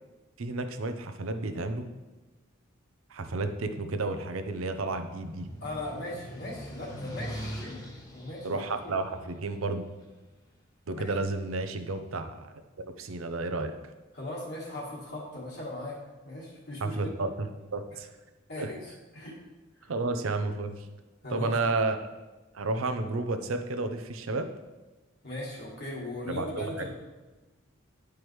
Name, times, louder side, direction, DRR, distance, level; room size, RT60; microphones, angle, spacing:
voice 1, 0.4-1.9 3.1-5.5 8.4-9.8 10.9-13.7 16.8-18.1 18.6-18.7 19.9-20.9 21.3-22.0 22.5-24.5 26.3-26.7, right 3 dB, 80° right, 8 dB, 0.6 m, -31 dB
sound 1, 4.4-10.2, equal, 20° left, 0.9 m, -43 dB
voice 2, 5.6-7.9 8.1-8.6 10.9-11.1 14.1-16.0 16.2-17.1 18.5-19.4 19.8-19.9 21.2-21.5 25.2-27.0, left 1 dB, 50° left, -5 dB, 1.4 m, -38 dB
10.5 x 4.7 x 3.1 m, 1.2 s
head